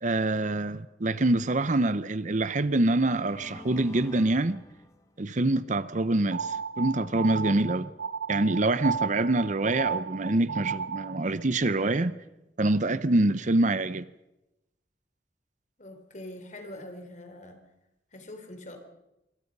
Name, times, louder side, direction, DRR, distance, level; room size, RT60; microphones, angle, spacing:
voice 1, 0.0-4.6 5.2-7.9 8.3-12.1 12.6-14.1, right 2 dB, 45° right, 0.8 m, -25 dB
sound 1, 1.9-2.0 2.7-5.5, left 2 dB, 20° left, 1.9 m, -49 dB
sound 2, 6.3-11.2, right 6 dB, 70° right, 1.2 m, -33 dB
voice 2, 15.8-17.6 18.1-18.8, left 1 dB, 45° left, 3.9 m, -43 dB
25.5 x 25.0 x 5.5 m
head